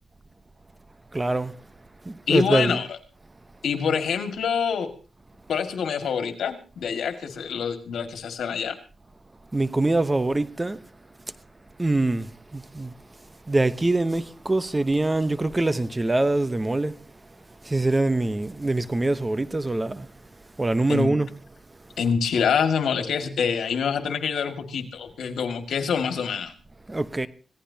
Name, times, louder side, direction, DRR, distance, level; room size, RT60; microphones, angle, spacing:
voice 1, 1.1-1.6 2.0-2.8 9.5-10.8 11.8-12.9 13.5-17.0 17.6-20.1 20.6-21.3 26.9-27.3, right 2 dB, 20° right, 0.9 m, -24 dB
voice 2, 2.3-3.0 3.6-4.9 5.5-8.8 20.9-21.1 22.0-26.5, left 6 dB, 85° left, 2.1 m, -26 dB
25.5 x 16.5 x 2.9 m
cardioid pair, 75°, 0 cm